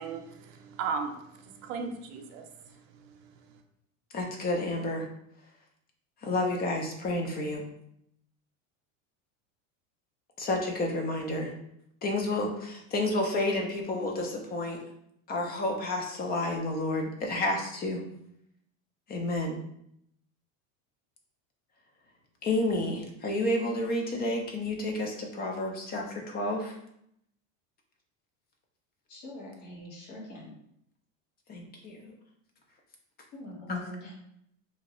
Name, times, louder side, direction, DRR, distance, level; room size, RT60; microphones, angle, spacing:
voice 1, 0.0-2.4, right 5 dB, 80° right, 5 dB, 0.6 m, -36 dB
voice 2, 4.1-5.1 6.2-7.6 10.4-11.5 12.0-14.8 15.3-18.0 19.1-19.6 22.4-26.7 31.5-32.1 33.7-33.8, left 2 dB, 25° left, 2 dB, 0.5 m, -30 dB
voice 3, 29.1-30.5 33.3-34.1, left 1 dB, 50° left, -5 dB, 1.5 m, -44 dB
2.8 x 2.5 x 3.0 m, 0.75 s
supercardioid pair, 135°, 39 cm